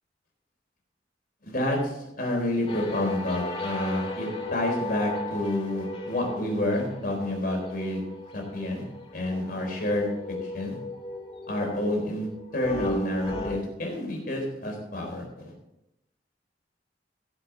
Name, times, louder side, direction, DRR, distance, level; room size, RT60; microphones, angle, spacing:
voice 1, 1.4-8.0 8.3-8.8 9.1-10.1 10.4-10.8 11.5-12.3 12.5-15.5, left 1 dB, 55° left, 1 dB, 3.9 m, -29 dB
sound 1, 2.7-13.5, left 2 dB, 35° left, 2.0 m, -36 dB
15.5 x 7.5 x 4.6 m, 0.87 s
head